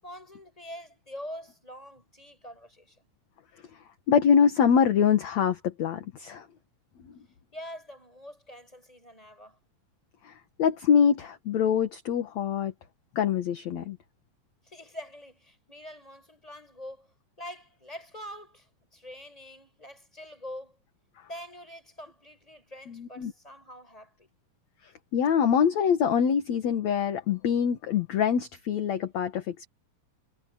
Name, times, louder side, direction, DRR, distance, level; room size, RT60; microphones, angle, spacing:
voice 1, 0.0-3.1 7.5-9.6 14.6-17.1 17.4-20.8 21.3-24.3, equal, 10° left, 7.9 m, -44 dB
voice 2, 4.1-6.5 10.2-10.3 10.6-12.7 13.2-14.0 22.9-23.3 25.1-29.7, left 7 dB, 60° left, 2.6 m, -24 dB
omnidirectional pair, 4.0 m